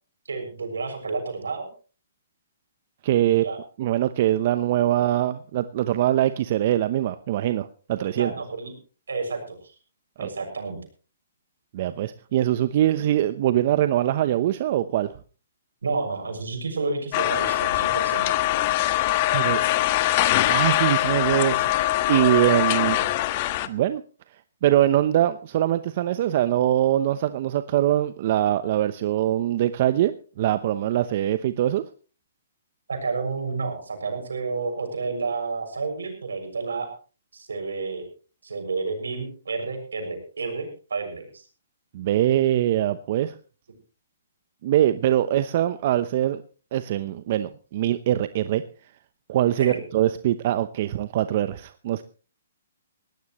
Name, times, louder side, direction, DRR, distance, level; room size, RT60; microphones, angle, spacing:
voice 1, 0.3-1.7 3.3-3.6 8.1-8.7 9.1-9.7 10.2-10.8 15.8-18.3 22.8-23.0 32.9-36.9 37.3-38.0 38.4-41.5 49.6-49.8, right 4 dB, 80° right, 5 dB, 6.7 m, -30 dB
voice 2, 3.0-3.5 3.8-8.3 10.2-10.3 11.7-15.2 19.3-19.6 20.5-21.7 22.1-23.0 23.7-24.0 24.3-31.8 41.9-43.3 44.6-46.4 46.7-48.6 49.3-52.0, right 12 dB, 45° right, 12 dB, 0.9 m, -23 dB
sound 1, 17.1-23.7, left 15 dB, 40° left, 1.4 m, -22 dB
20.0 x 17.5 x 3.1 m, 0.37 s
hypercardioid pair, 135°, 0 cm